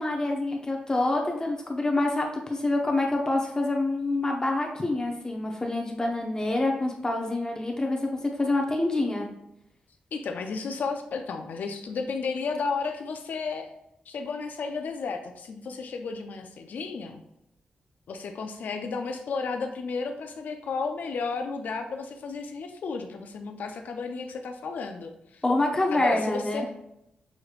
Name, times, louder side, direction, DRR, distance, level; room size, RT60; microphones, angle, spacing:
voice 1, 0.0-9.3 25.4-26.6, left 2 dB, 25° left, 1 dB, 0.7 m, -26 dB
voice 2, 10.1-13.7 14.1-17.2 18.1-25.4 25.9-26.7, left 4 dB, 75° left, 5 dB, 0.4 m, -33 dB
6.3 x 3.0 x 2.4 m, 0.83 s
cardioid pair, 70°, 3 cm